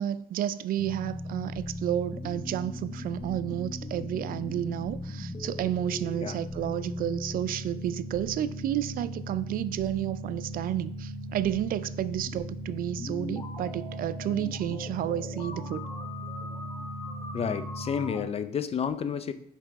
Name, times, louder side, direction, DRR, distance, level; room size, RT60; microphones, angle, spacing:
voice 1, 0.0-15.8, right 11 dB, 60° right, 15 dB, 0.4 m, -31 dB
sound 1, 0.8-18.2, equal, 20° left, 1.2 m, -37 dB
voice 2, 17.3-19.3, left 7 dB, 35° left, 12 dB, 0.5 m, -30 dB
8.0 x 5.8 x 3.5 m, 0.67 s
cardioid pair, 110°, 17 cm